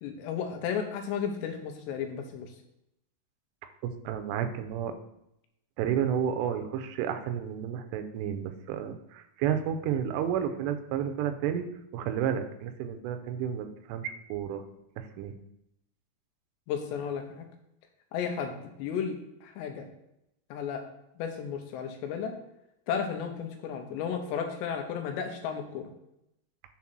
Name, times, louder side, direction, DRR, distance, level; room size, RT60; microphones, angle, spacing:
voice 1, 0.0-2.5 16.7-17.5 18.1-19.2 19.4-19.9 20.5-20.8 21.2-22.4 22.9-25.9, left 7 dB, 85° left, 5 dB, 3.0 m, -33 dB
voice 2, 3.8-4.9 5.8-14.7 15.0-15.4, right 9 dB, 85° right, 7 dB, 2.8 m, -31 dB
7.4 x 3.8 x 5.8 m, 0.83 s
omnidirectional pair, 5.0 m